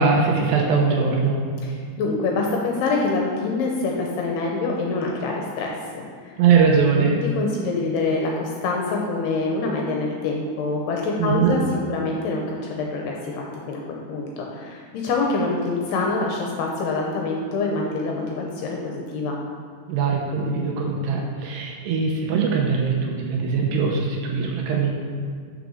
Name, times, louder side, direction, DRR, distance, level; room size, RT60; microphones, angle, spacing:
voice 1, 0.0-1.4 6.4-7.2 11.2-11.6 19.9-24.9, right 5 dB, 75° right, 0 dB, 2.7 m, -21 dB
voice 2, 1.6-6.4 7.4-11.6 11.9-19.4, left 3 dB, 75° left, 0 dB, 2.5 m, -26 dB
6.7 x 6.2 x 6.4 m, 2.1 s
omnidirectional pair, 5.2 m